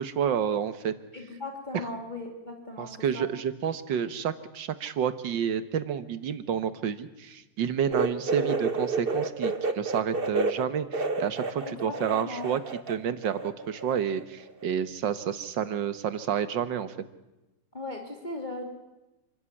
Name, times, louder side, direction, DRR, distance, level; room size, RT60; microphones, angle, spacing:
voice 1, 0.0-0.9 1.7-1.9 2.8-12.6 12.9-16.9, right 8 dB, 90° right, 13 dB, 1.9 m, -29 dB
voice 2, 1.1-3.2 11.6-12.5 17.7-18.6, left 2 dB, 25° left, 2 dB, 3.2 m, -38 dB
sound 1, 7.9-13.0 13.2-14.2 14.5-14.6 15.6-15.7, right 3 dB, 35° right, 1.5 m, -30 dB
27.0 x 13.0 x 9.7 m, 1.0 s
omnidirectional pair, 1.9 m